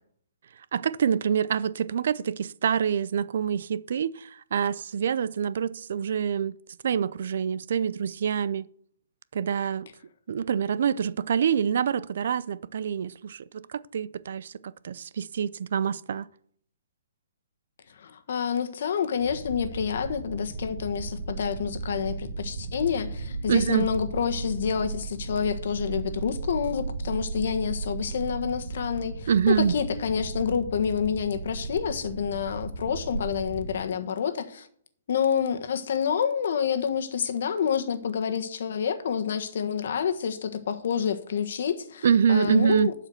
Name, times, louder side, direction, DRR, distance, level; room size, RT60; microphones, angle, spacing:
voice 1, 0.7-6.6 6.8-8.7 9.3-9.9 10.3-16.3 23.5-23.9 29.3-29.7 42.0-42.9, right 7 dB, 55° right, 0.4 m, -26 dB
voice 2, 18.0-34.7 35.1-42.9, left 7 dB, 55° left, 1.4 m, -28 dB
sound 1, 19.2-33.8, right 3 dB, 75° right, 2.6 m, -35 dB
12.0 x 4.9 x 7.8 m
hypercardioid pair, 170°, 0 cm